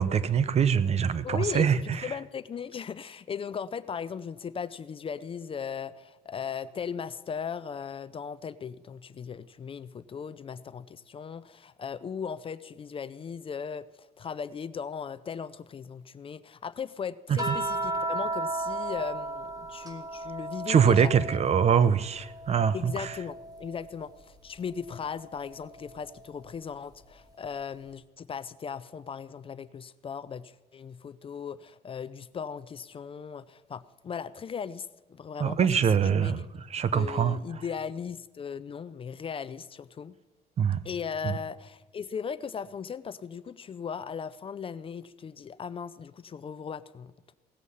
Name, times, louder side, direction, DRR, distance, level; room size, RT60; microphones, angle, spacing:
voice 1, 0.0-2.0 17.5-17.6 20.7-23.1 35.4-36.4 36.7-37.4 40.6-40.8 41.2-41.3, right 7 dB, 40° right, 16 dB, 0.7 m, -24 dB
voice 2, 1.2-21.1 22.7-36.4 36.9-40.1 40.8-47.3, left 6 dB, 30° left, 15 dB, 0.5 m, -38 dB
sound 1, 17.4-21.9 22.2-23.9 25.4-25.5, right 2 dB, 20° right, 2.4 m, -34 dB
17.5 x 8.2 x 5.5 m, 1.2 s
cardioid pair, 110°, 17 cm